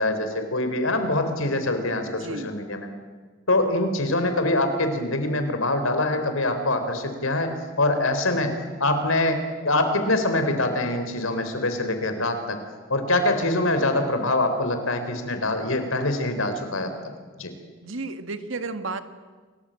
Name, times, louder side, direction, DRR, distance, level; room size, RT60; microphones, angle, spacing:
voice 1, 0.0-2.9 3.5-7.5 7.8-8.5 8.8-12.6 12.9-16.9 17.4-17.5, left 2 dB, 85° left, 7 dB, 3.9 m, -24 dB
voice 2, 2.1-2.5 17.8-19.0, right 3 dB, 75° right, 9 dB, 1.7 m, -32 dB
28.5 x 19.0 x 8.9 m, 1.4 s
head